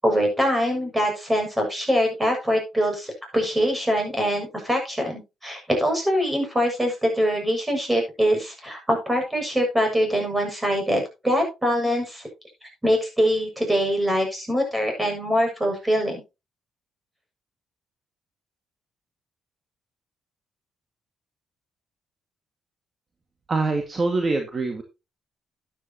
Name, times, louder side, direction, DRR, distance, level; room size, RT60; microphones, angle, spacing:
voice 1, 0.0-12.2 12.8-16.2, equal, 10° right, 3 dB, 6.8 m, -23 dB
voice 2, 23.5-24.8, right 3 dB, 35° right, 4 dB, 2.0 m, -24 dB
12.5 x 10.0 x 3.0 m, 0.26 s
cardioid pair, 90°, 0 cm